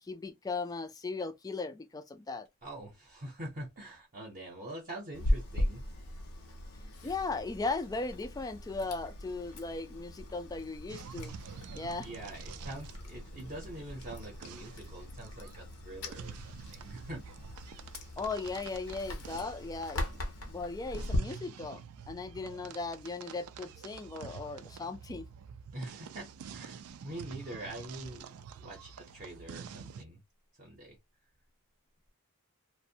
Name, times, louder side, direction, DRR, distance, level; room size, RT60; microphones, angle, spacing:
voice 1, 0.0-2.5 7.0-11.4 11.7-12.1 18.2-20.2 20.5-21.8 22.1-25.2, left 3 dB, 15° left, 0.3 m, -37 dB
voice 2, 2.6-5.8 12.0-17.2 25.7-28.3 28.6-30.2 30.6-31.0, right 1 dB, 35° right, 0.7 m, -44 dB
Chewing mastication, 5.1-21.2, left 1 dB, 70° left, 0.7 m, -39 dB
sound 1, 10.9-30.0, right 7 dB, 70° right, 0.3 m, -48 dB
2.5 x 2.1 x 2.7 m
head